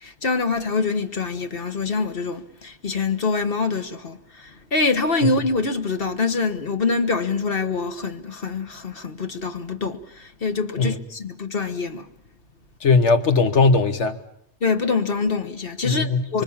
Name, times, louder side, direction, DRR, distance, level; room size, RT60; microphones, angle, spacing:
voice 1, 0.0-12.0 14.6-16.4, left 4 dB, 55° left, 1.5 m, -25 dB
voice 2, 12.8-14.2 15.8-16.4, left 4 dB, 85° left, 1.7 m, -19 dB
25.5 x 24.0 x 7.3 m
omnidirectional pair, 1.2 m